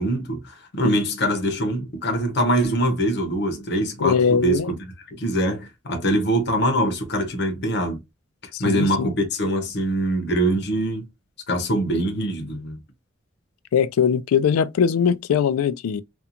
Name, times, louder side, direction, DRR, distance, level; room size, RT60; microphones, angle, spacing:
voice 1, 0.0-4.7 5.1-8.0 8.6-11.1 11.5-12.8, right 1 dB, 50° left, 0.7 m, -23 dB
voice 2, 4.0-4.7 8.5-9.1 13.7-16.0, left 7 dB, 85° left, 0.3 m, -21 dB
2.5 x 2.2 x 2.7 m
head